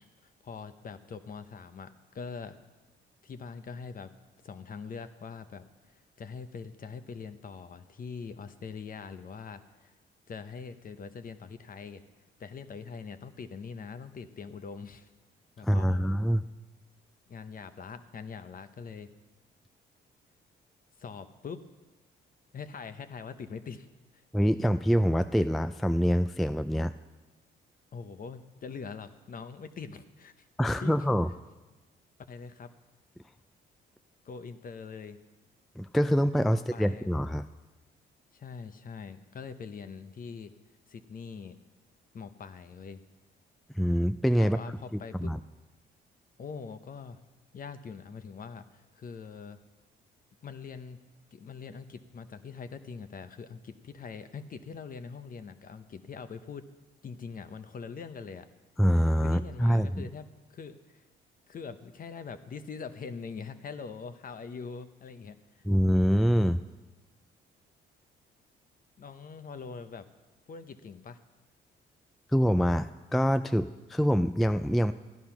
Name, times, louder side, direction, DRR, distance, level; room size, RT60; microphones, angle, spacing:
voice 1, 0.0-2.6 3.2-4.1 4.4-9.9 10.3-12.0 12.4-15.1 15.6-16.1 17.3-19.1 21.0-21.6 22.5-23.9 24.1-24.2 27.9-31.0 32.3-32.7 34.2-35.2 36.7-37.1 38.3-40.5 40.9-41.6 42.1-43.0 44.4-45.3 46.4-47.2 47.5-49.6 50.4-51.0 51.3-56.7 57.0-58.5 59.2-61.1 61.5-65.7 69.0-70.1 70.5-71.2, left 5 dB, 45° left, 11 dB, 0.9 m, -43 dB
voice 2, 15.6-16.4 24.3-26.9 30.6-31.3 35.8-37.4 43.7-44.6 44.9-45.4 58.8-60.1 65.7-66.6 72.3-74.9, equal, ahead, 11 dB, 0.3 m, -25 dB
13.5 x 11.0 x 5.9 m, 1.2 s
cardioid pair, 90°, 20 cm